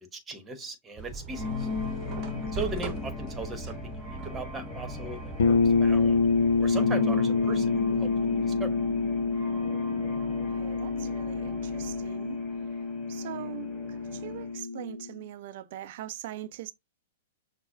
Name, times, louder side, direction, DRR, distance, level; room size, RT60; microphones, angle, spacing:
voice 1, 0.1-1.7 2.5-6.2 6.6-8.1 8.4-8.7, right 3 dB, 15° right, 1.1 m, -38 dB
sound 1, 1.0-6.7, right 5 dB, 35° right, 0.9 m, -40 dB
sound 2, 1.3-14.6, left 5 dB, 5° left, 1.8 m, -38 dB
voice 2, 2.3-2.9 10.5-12.4 13.1-16.7, right 13 dB, 55° right, 0.5 m, -42 dB
sound 3, 5.4-15.1, left 4 dB, 65° left, 0.6 m, -27 dB
6.0 x 2.2 x 2.6 m
figure-of-eight pair, 105°, 0 cm